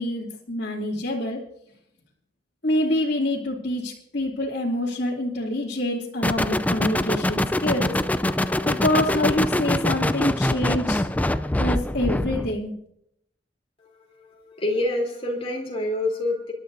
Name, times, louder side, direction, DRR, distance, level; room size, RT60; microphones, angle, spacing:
voice 1, 0.0-1.4 2.6-7.9 8.6-11.1 11.6-12.7, left 1 dB, 65° left, -7 dB, 2.7 m, -26 dB
sound 1, 6.2-12.6, left 1 dB, 10° left, 0.4 m, -24 dB
voice 2, 13.8-16.5, left 1 dB, 35° left, 0 dB, 3.6 m, -27 dB
28.0 x 12.0 x 2.7 m, 0.74 s
head